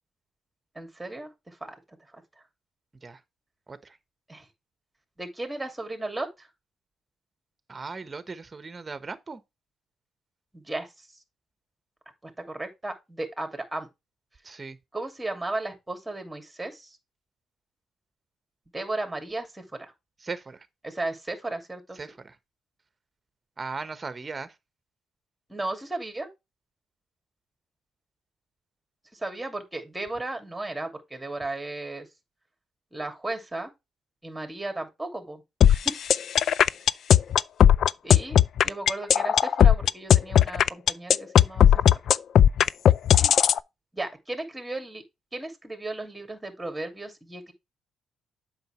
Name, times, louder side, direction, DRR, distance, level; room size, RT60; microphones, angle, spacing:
voice 1, 0.7-1.8 4.3-4.4 5.2-6.5 10.5-10.9 12.2-13.9 14.9-17.0 18.7-19.9 20.8-22.0 25.5-26.3 29.1-32.1 32.9-33.7 34.2-35.4 35.7-35.9 38.0-38.4 38.6-41.7 42.6-42.7 43.1-43.3 43.9-45.0 45.3-47.5, right 2 dB, 10° right, 2.5 m, -35 dB
voice 2, 7.7-9.4 14.4-14.8 20.2-20.7 22.0-22.4 23.6-24.5, right 4 dB, 25° right, 1.1 m, -38 dB
sound 1, 35.6-43.6, left 9 dB, 65° left, 0.3 m, -17 dB
7.9 x 5.8 x 3.2 m
cardioid pair, 90°, 0 cm